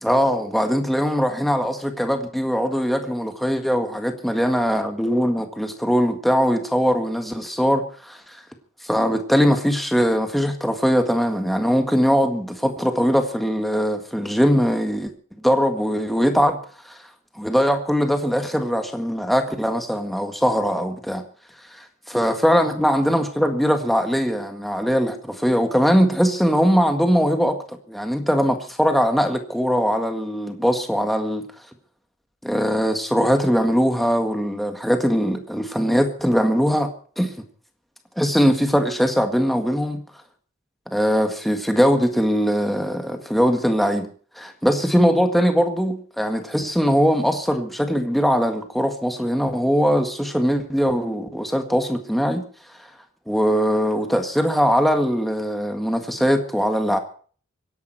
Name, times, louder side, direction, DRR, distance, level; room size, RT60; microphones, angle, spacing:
voice 1, 0.0-8.4 8.8-15.1 15.4-16.6 16.8-17.0 17.4-21.2 21.7-31.5 32.4-36.9 37.2-37.3 38.2-40.0 40.9-44.1 44.3-52.4 52.8-52.9 53.3-57.0, equal, ahead, 1.7 m, -21 dB
25.5 x 11.0 x 4.5 m
head